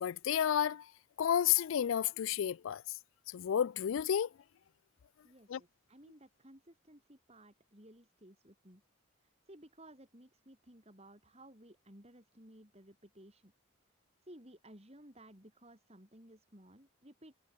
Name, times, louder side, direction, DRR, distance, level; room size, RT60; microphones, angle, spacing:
voice 1, 0.0-0.8 1.2-2.8 3.3-4.3 5.5-5.6, left 9 dB, 65° left, 0.3 m, -31 dB
voice 2, 5.2-8.8 9.2-13.5 14.2-17.4, right 1 dB, 30° right, 6.5 m, -57 dB
head